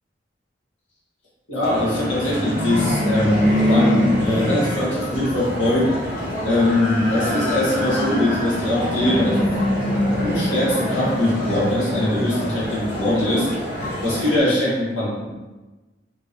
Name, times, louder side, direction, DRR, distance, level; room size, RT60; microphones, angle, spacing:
voice 1, 1.5-5.9 6.4-9.4 10.2-13.5 14.0-15.2, left 1 dB, 85° left, -7 dB, 1.4 m, -21 dB
sound 1, 1.6-14.4, equal, 45° left, 1.3 m, -24 dB
3.3 x 2.7 x 3.3 m, 1.2 s
head